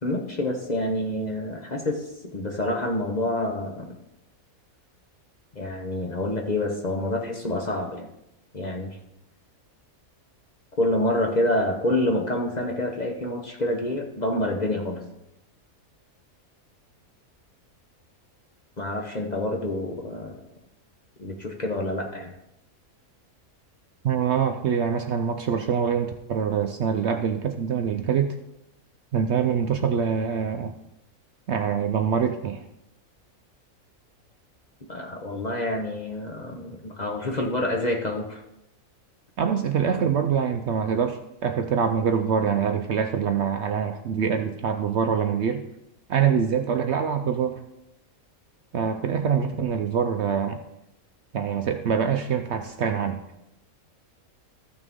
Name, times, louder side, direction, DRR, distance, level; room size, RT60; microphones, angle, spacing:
voice 1, 0.0-2.1 2.3-4.0 5.5-8.1 8.5-9.0 10.8-15.0 18.8-20.3 21.2-22.3 34.9-38.4, left 1 dB, 35° left, 2 dB, 1.0 m, -27 dB
voice 2, 24.0-28.3 29.1-30.7 31.5-32.6 39.4-45.6 46.1-47.6 48.7-50.6 51.3-53.2, right 7 dB, 65° right, 7 dB, 0.7 m, -24 dB
14.0 x 6.4 x 3.6 m, 0.85 s
omnidirectional pair, 1.5 m